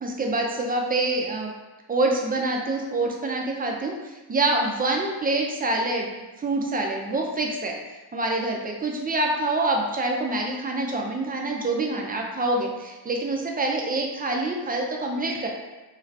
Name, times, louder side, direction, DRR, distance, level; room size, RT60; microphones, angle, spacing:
voice 1, 0.0-1.5 1.9-6.1 6.4-7.7 8.1-15.5, right 2 dB, 25° right, 1 dB, 0.4 m, -26 dB
2.6 x 2.4 x 3.2 m, 1.2 s
wide cardioid pair, 90°, 40 cm